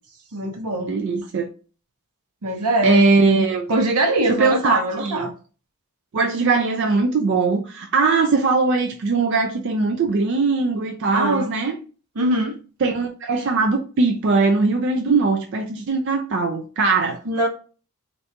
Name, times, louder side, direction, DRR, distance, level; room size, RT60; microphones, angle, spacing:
voice 1, 0.3-0.9 2.4-3.1 3.7-5.3 11.1-11.5 12.2-12.6 17.2-17.5, right 1 dB, 85° right, 0.9 m, -22 dB
voice 2, 0.9-1.5 2.8-3.7 4.2-5.3 6.1-11.8 12.8-17.2, right 4 dB, 55° right, 0.4 m, -20 dB
3.3 x 2.6 x 2.7 m
head